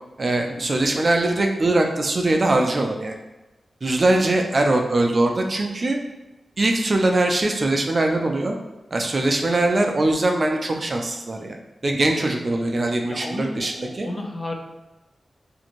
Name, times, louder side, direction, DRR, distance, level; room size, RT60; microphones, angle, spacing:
voice 1, 0.2-3.2 3.8-6.0 6.6-8.5 8.9-11.6 11.8-14.1, right 2 dB, 40° right, 3 dB, 0.3 m, -21 dB
voice 2, 12.8-14.5, left 1 dB, 30° left, 2 dB, 0.4 m, -33 dB
2.6 x 2.5 x 2.9 m, 1.0 s
wide cardioid pair, 95°, 0 cm